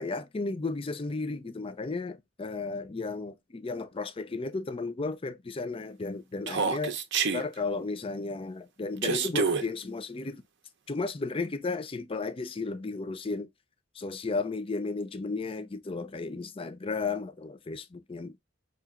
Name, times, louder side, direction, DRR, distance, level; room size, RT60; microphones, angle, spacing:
voice 1, 0.0-7.0 7.3-10.4 10.9-13.5 14.0-18.4, left 3 dB, 25° left, 0.5 m, -34 dB
Human voice, 6.5-7.4 9.0-9.6, right 5 dB, 60° right, 0.6 m, -27 dB
4.9 x 2.9 x 2.4 m
head